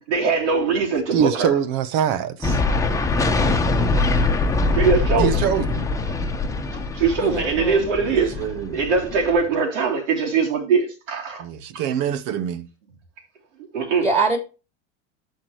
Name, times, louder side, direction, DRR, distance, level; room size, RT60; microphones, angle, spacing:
voice 1, 0.1-1.5 4.7-5.4 6.9-8.4 8.7-11.4 13.7-14.1, right 5 dB, 80° right, 3.5 m, -21 dB
voice 2, 1.1-2.6 5.2-5.9 8.0-8.8 11.4-12.7, right 9 dB, 55° right, 1.0 m, -24 dB
sound 1, 2.4-9.4, left 3 dB, 10° left, 1.1 m, -23 dB
voice 3, 7.2-7.9 14.0-14.4, right 3 dB, 15° right, 3.3 m, -23 dB
14.0 x 4.8 x 3.1 m
supercardioid pair, 115°, 36 cm